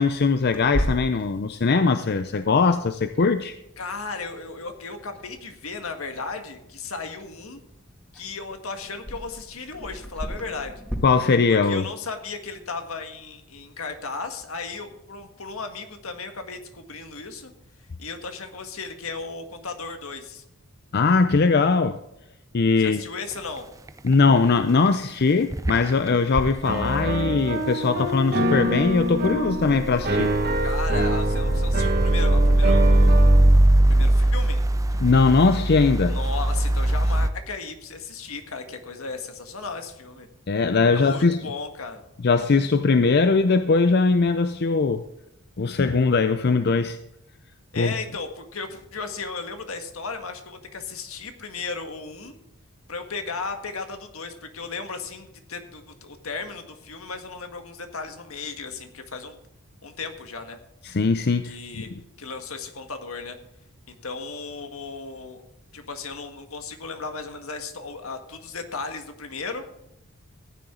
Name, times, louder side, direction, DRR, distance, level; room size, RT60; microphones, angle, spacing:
voice 1, 0.0-3.6 11.0-11.9 20.9-22.0 22.5-23.0 24.0-30.3 30.6-30.7 35.0-36.2 40.5-41.4 42.2-45.0 45.6-47.0 47.8-47.9 60.8-61.8, left 4 dB, 50° left, 0.5 m, -20 dB
Clock, 0.5-10.9, equal, 5° left, 2.2 m, -37 dB
voice 2, 3.8-7.6 8.1-10.8 11.5-17.5 18.0-20.4 22.8-23.7 30.6-33.4 33.9-34.6 36.1-40.3 40.9-42.0 47.7-52.4 52.9-59.4 59.8-60.6 61.4-61.9 62.2-63.4 63.9-65.4 65.7-69.6, left 4 dB, 75° left, 1.7 m, -35 dB
sound 1, 23.3-23.6 23.9-24.5 24.9-25.0 25.5-26.5 28.6-37.3, right 1 dB, 15° right, 0.6 m, -20 dB
Piano, 26.6-33.5, right 1 dB, 45° right, 1.6 m, -26 dB
15.0 x 9.8 x 3.8 m
head